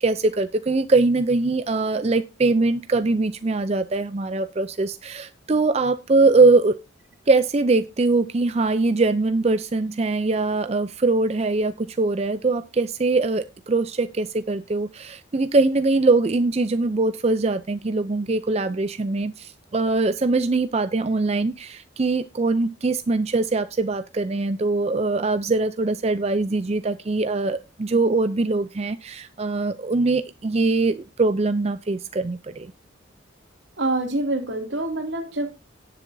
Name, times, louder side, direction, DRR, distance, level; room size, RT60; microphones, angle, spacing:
voice 1, 0.0-6.8 7.3-32.7, right 3 dB, 30° right, 11 dB, 0.4 m, -22 dB
voice 2, 33.8-35.5, right 2 dB, 70° right, 5 dB, 2.6 m, -26 dB
18.0 x 6.9 x 2.7 m, 0.28 s
head